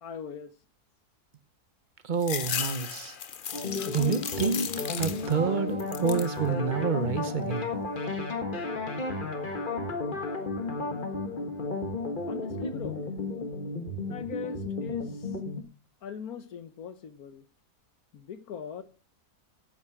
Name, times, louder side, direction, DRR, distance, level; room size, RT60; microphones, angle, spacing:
voice 1, 0.0-0.5 12.3-13.0 14.1-15.3 16.0-17.4 18.1-18.8, left 7 dB, 70° left, 1.5 m, -41 dB
voice 2, 2.0-3.2 3.9-7.7, right 6 dB, 35° right, 1.0 m, -29 dB
sound 1, 2.2-5.5 5.8-6.4 6.9-7.6, left 7 dB, 50° left, 0.6 m, -36 dB
sound 2, 3.5-15.6, left 3 dB, 30° left, 1.7 m, -33 dB
14.0 x 8.5 x 4.9 m
omnidirectional pair, 1.7 m